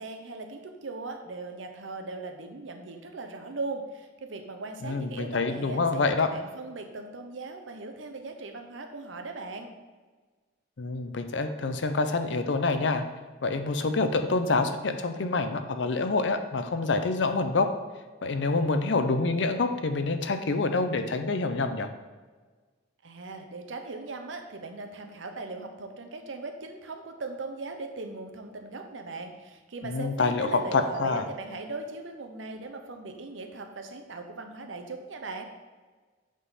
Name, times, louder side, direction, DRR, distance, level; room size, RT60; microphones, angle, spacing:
voice 1, 0.0-9.7 23.0-35.4, right 3 dB, 85° right, 6 dB, 0.8 m, -39 dB
voice 2, 4.8-6.3 10.8-13.0 13.4-17.7 18.2-21.9 29.8-31.2, left 3 dB, 70° left, 8 dB, 0.6 m, -27 dB
8.2 x 3.8 x 4.1 m, 1.4 s
head